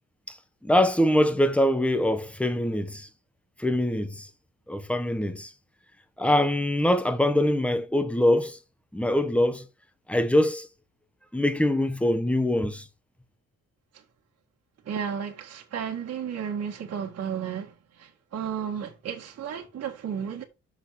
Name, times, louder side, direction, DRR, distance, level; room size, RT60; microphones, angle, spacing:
voice 1, 0.6-3.1 3.6-4.3 4.7-5.5 6.2-8.6 8.9-9.6 10.1-10.7 11.3-12.8, left 1 dB, 5° left, 1.2 m, -23 dB
voice 2, 14.8-20.4, right 7 dB, 55° right, 2.0 m, -33 dB
6.5 x 5.1 x 5.6 m
cardioid pair, 90°, 30 cm